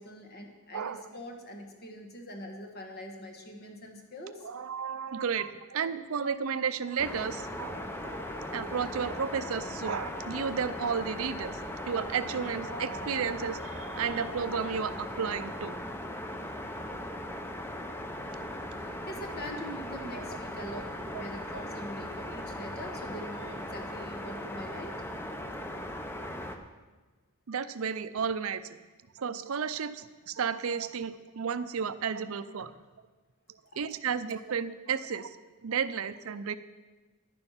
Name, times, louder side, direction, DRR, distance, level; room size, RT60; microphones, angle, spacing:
voice 1, 0.0-4.5 18.7-25.0, equal, 45° left, 3 dB, 1.3 m, -43 dB
voice 2, 0.7-1.1 4.4-7.8 8.5-11.6 11.9-15.7 20.1-20.2 21.1-21.2 27.5-28.8 29.2-32.7 33.8-35.4 35.6-36.6, right 6 dB, 70° right, 12 dB, 0.5 m, -33 dB
sound 1, 6.1-14.7, left 3 dB, 90° left, 1.4 m, -47 dB
sound 2, 7.0-26.6, left 1 dB, 10° left, 0.7 m, -39 dB
11.0 x 9.7 x 5.7 m, 1.2 s
head